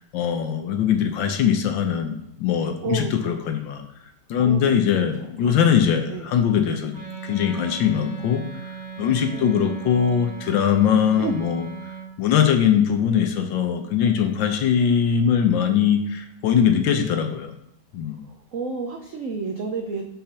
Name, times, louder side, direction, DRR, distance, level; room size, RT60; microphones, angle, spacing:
voice 1, 0.0-3.8 4.3-6.9 7.2-8.7 9.0-11.7 12.2-17.5 17.9-18.2, left 8 dB, 70° left, 6 dB, 1.4 m, -21 dB
voice 2, 2.8-3.4 4.4-4.7 5.0-5.6 6.1-6.3 7.9-8.1 9.1-9.6 11.2-11.3 18.5-20.0, right 4 dB, 80° right, 2 dB, 0.7 m, -31 dB
Wind instrument woodwind instrument, 6.9-12.1, right 6 dB, 10° left, 1.2 m, -38 dB
5.6 x 3.8 x 5.7 m, 0.81 s
omnidirectional pair, 2.3 m